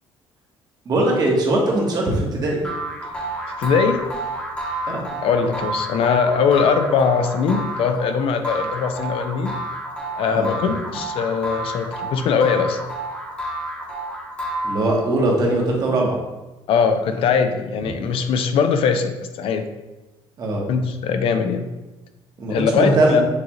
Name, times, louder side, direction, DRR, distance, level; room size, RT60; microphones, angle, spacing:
voice 1, 0.8-2.6 4.9-5.0 10.3-10.5 14.6-16.2 20.4-20.7 22.4-23.2, right 2 dB, 40° right, -1 dB, 1.1 m, -20 dB
sound 1, 2.6-15.2, right 1 dB, 10° left, 1.0 m, -30 dB
voice 2, 3.6-4.0 5.2-9.5 10.2-12.8 16.7-19.6 20.7-21.7 22.5-23.2, left 6 dB, 60° left, 8 dB, 0.4 m, -21 dB
6.6 x 2.4 x 3.0 m, 1.1 s
cardioid pair, 125°, 10 cm